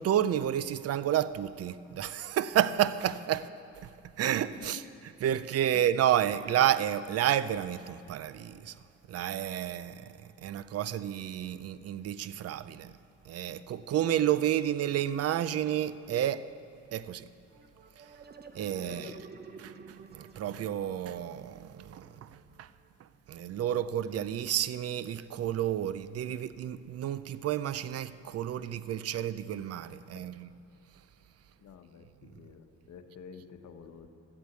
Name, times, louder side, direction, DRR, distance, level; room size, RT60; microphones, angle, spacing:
voice 1, 0.0-3.5 4.2-4.8 5.2-8.8 9.1-12.9 13.3-16.5 16.9-17.3 18.5-19.1 19.6-19.7 20.1-22.3 22.6-22.7 23.3-30.5, right 11 dB, 55° right, 0.5 m, -30 dB
sound 1, 17.5-22.9, right 5 dB, 35° right, 0.9 m, -51 dB
voice 2, 18.8-19.2 30.1-30.3 31.6-34.1, left 6 dB, 65° left, 1.1 m, -49 dB
12.5 x 8.2 x 8.0 m
cardioid pair, 90°, 30 cm